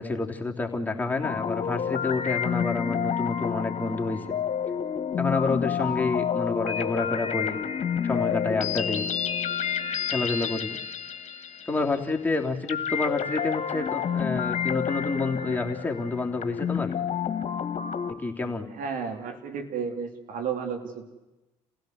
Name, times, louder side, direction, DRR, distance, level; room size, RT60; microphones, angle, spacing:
voice 1, 0.0-4.2 5.2-7.6 8.0-9.1 10.1-10.8 11.7-16.9 18.1-18.7, left 3 dB, 10° left, 1 dB, 3.2 m, -28 dB
sound 1, 1.2-12.1 12.7-18.1, left 8 dB, 50° left, 1.8 m, -29 dB
voice 2, 18.7-21.1, right 6 dB, 65° right, 4 dB, 3.4 m, -32 dB
30.0 x 16.0 x 8.2 m, 1.0 s
hypercardioid pair, 55°, 15 cm